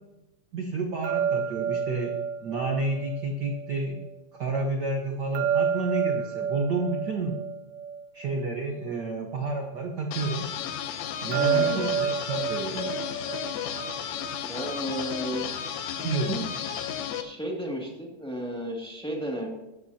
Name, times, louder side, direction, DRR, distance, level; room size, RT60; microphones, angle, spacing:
voice 1, 0.5-4.0 4.4-7.4 8.1-10.5 11.2-12.9 16.0-16.4, right 3 dB, 70° right, 2 dB, 1.0 m, -30 dB
sound 1, 1.0-4.1 5.3-8.9 11.3-14.4, right 7 dB, 90° right, 1.3 m, -30 dB
sound 2, 10.1-17.2, left 9 dB, 75° left, 2.2 m, -33 dB
voice 2, 11.3-11.9 14.4-15.5 16.3-16.8 17.2-19.5, right 1 dB, ahead, -1 dB, 1.6 m, -34 dB
14.5 x 13.0 x 2.8 m, 0.96 s
omnidirectional pair, 3.4 m